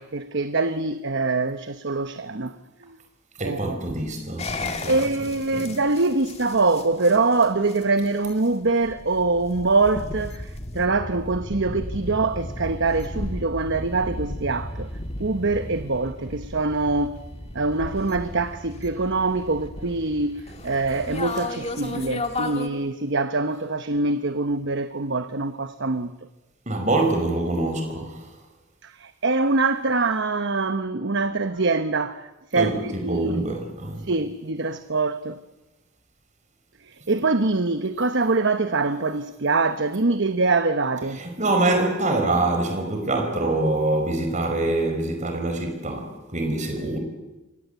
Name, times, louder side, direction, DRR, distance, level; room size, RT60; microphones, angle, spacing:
voice 1, 0.0-2.5 2.8-3.0 3.4-4.0 4.9-14.9 15.2-17.2 17.5-26.1 28.8-33.5 34.0-35.4 36.8-41.2, right 3 dB, 55° right, 1.0 m, -24 dB
voice 2, 3.4-4.9 5.5-5.7 26.6-28.3 32.5-34.1 41.1-47.0, right 2 dB, 35° right, 5.2 m, -25 dB
sound 1, 4.4-22.7, left 2 dB, 30° left, 1.9 m, -35 dB
28.5 x 24.0 x 8.1 m
head